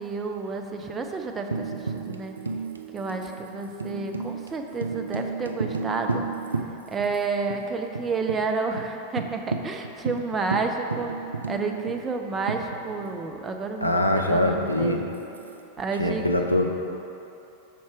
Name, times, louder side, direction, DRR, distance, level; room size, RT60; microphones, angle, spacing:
voice 1, 0.0-1.7 1.9-2.3 2.9-6.3 6.9-11.1 11.5-15.0 15.8-16.2, right 4 dB, 20° right, 4 dB, 0.5 m, -30 dB
Tambourine, 1.5-7.2 7.5-7.6 7.9-8.4 8.8-8.9 9.2-13.3 14.8-15.8, right 4 dB, 75° right, 0.3 m, -33 dB
voice 2, 13.8-15.0 16.0-16.7, left 1 dB, 90° left, 2 dB, 0.4 m, -23 dB
5.8 x 4.1 x 4.8 m, 2.8 s
figure-of-eight pair, 90°, 0 cm